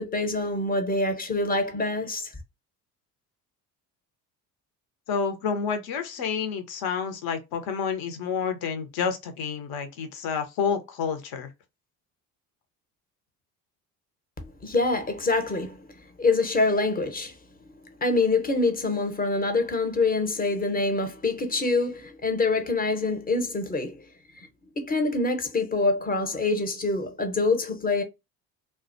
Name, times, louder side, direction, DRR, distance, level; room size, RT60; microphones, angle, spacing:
voice 1, 0.0-2.3 14.6-15.9 16.2-17.3 18.0-24.0 24.8-28.0, left 3 dB, 20° left, 0.7 m, -25 dB
voice 2, 5.1-11.5, left 6 dB, 55° left, 0.8 m, -29 dB
2.3 x 2.2 x 2.5 m
hypercardioid pair, 65°, 44 cm